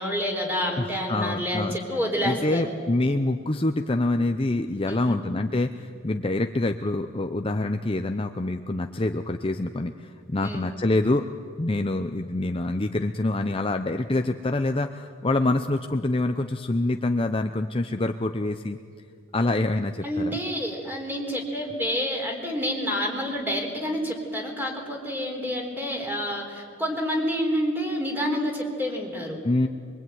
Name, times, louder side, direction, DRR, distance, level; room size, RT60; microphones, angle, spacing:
voice 1, 0.0-2.7 4.9-5.2 10.4-10.7 20.0-29.4, equal, 10° right, 1 dB, 3.9 m, -28 dB
voice 2, 0.8-1.8 2.2-11.3 11.6-18.8 19.3-20.4 29.4-29.7, left 2 dB, 25° left, 6 dB, 0.7 m, -26 dB
24.0 x 23.0 x 9.3 m, 2.2 s
head